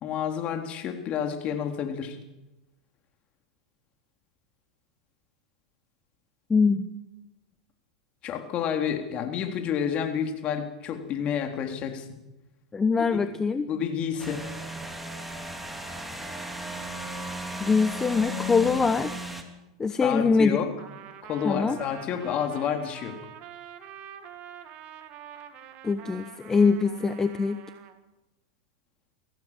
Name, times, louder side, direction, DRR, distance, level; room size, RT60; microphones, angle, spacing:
voice 1, 0.0-2.2 8.2-12.1 13.0-13.2 13.7-14.4 18.6-18.7 19.9-20.7 21.2-23.2, left 8 dB, 40° left, 5 dB, 3.5 m, -29 dB
voice 2, 6.5-6.9 12.7-13.7 17.6-19.1 19.8-20.6 21.4-21.8 25.8-27.6, left 4 dB, 15° left, 10 dB, 1.0 m, -23 dB
sound 1, 14.2-19.4, equal, 5° right, 3.0 m, -35 dB
Trumpet, 20.8-28.0, right 10 dB, 45° right, 2.2 m, -46 dB
23.5 x 16.0 x 7.5 m, 0.99 s
hypercardioid pair, 115°, 3 cm